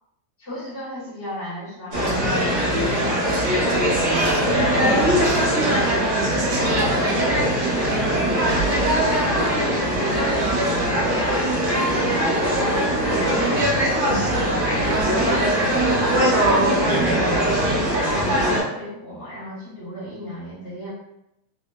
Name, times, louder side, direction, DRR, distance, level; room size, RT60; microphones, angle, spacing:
voice 1, 0.4-4.0 4.6-5.9 6.6-11.3 11.6-14.7 15.2-20.9, left 1 dB, 70° left, -12 dB, 0.7 m, -35 dB
sound 1, 1.9-18.6, right 1 dB, 60° right, 1.5 m, -21 dB
sound 2, 2.0-2.3 3.3-4.5 5.1-5.6 6.5-7.0, right 3 dB, 80° right, 1.3 m, -40 dB
4.6 x 2.0 x 2.2 m, 0.83 s
omnidirectional pair, 3.3 m